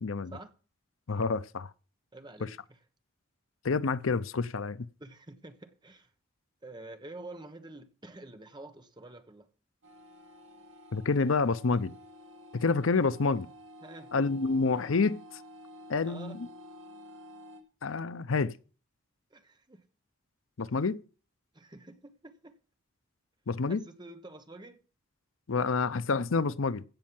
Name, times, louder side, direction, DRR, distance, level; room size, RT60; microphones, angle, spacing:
voice 1, 0.0-0.3 1.1-1.7 2.4-2.5 3.6-4.9 10.9-11.9 12.5-13.5 14.1-15.2 15.9-16.5 17.8-18.6 20.6-21.0 23.5-23.8 25.5-26.8, left 4 dB, 85° left, 0.7 m, -28 dB
voice 2, 2.1-2.6 5.0-6.1 6.6-9.5 13.8-14.1 16.0-16.4 19.3-19.9 21.5-22.5 23.7-24.8, right 2 dB, 20° right, 1.3 m, -48 dB
sound 1, 9.8-17.6, equal, 70° right, 2.3 m, -51 dB
16.0 x 5.4 x 7.6 m
head